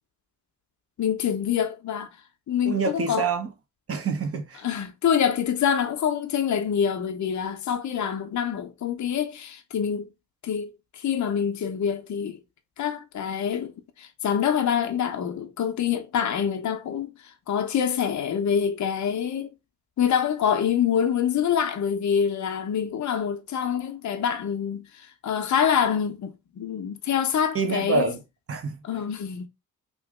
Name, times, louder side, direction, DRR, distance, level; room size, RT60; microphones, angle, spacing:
voice 1, 1.0-2.1 2.5-3.3 4.6-10.1 10.4-12.4 12.8-13.7 14.0-17.1 17.5-19.5 20.0-28.1 28.8-29.5, left 8 dB, 40° left, 0.8 m, -26 dB
voice 2, 2.6-3.5 3.9-4.6 27.5-28.2 28.5-28.8, right 4 dB, 30° right, 1.0 m, -26 dB
3.0 x 2.5 x 3.6 m
hypercardioid pair, 50°, 46 cm